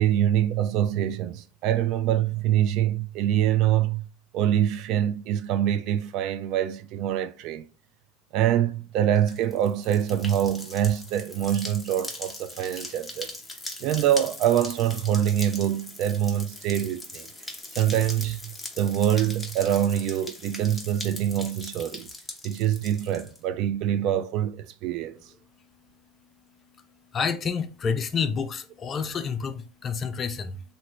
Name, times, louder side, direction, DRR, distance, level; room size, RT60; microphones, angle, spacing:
voice 1, 0.0-4.1 4.3-7.7 8.3-13.3 13.8-17.3 17.8-22.1 22.4-25.1, right 11 dB, 60° right, 0.3 m, -25 dB
sound 1, 9.1-23.4, left 2 dB, 10° left, 0.8 m, -40 dB
voice 2, 27.1-30.6, left 6 dB, 35° left, 0.5 m, -29 dB
2.9 x 2.5 x 3.0 m
hypercardioid pair, 95°, 0 cm